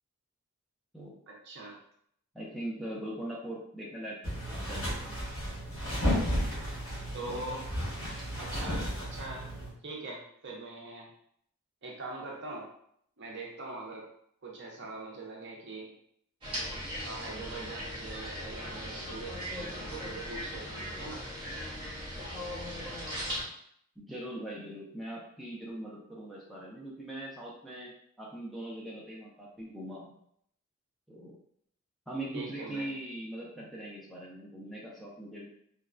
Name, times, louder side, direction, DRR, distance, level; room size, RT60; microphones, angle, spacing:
voice 1, 1.3-1.8 7.1-7.7 8.4-9.5 9.8-11.1 11.8-12.7 13.2-14.1 14.4-15.9 17.0-21.2 32.3-32.9, right 2 dB, 50° right, -1 dB, 0.6 m, -42 dB
voice 2, 2.3-4.9 24.0-27.9 28.2-30.2 31.1-31.4 32.1-35.4, right 1 dB, ahead, -5 dB, 0.4 m, -41 dB
sound 1, 4.2-9.7, equal, 65° left, 1.3 m, -33 dB
sound 2, 16.4-23.4, equal, 25° right, 0.9 m, -38 dB
3.0 x 2.2 x 2.4 m, 0.68 s
head